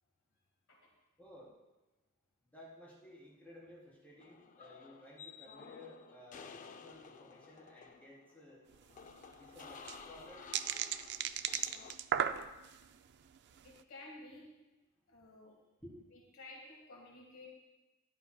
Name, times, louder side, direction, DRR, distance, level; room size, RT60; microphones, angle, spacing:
voice 1, 1.2-1.5 2.5-8.6 9.4-10.5 15.8-16.0, left 1 dB, 10° left, -8 dB, 3.8 m, -55 dB
sound 1, 4.2-12.0, left 6 dB, 35° left, 0.4 m, -53 dB
sound 2, 8.7-8.8 9.0-9.1 9.6-12.8 13.4-13.7, right 9 dB, 50° right, 0.4 m, -36 dB
voice 2, 13.6-14.5 15.1-15.5 16.1-17.5, left 2 dB, 65° left, -1 dB, 1.6 m, -53 dB
13.0 x 10.5 x 2.3 m, 1.1 s
head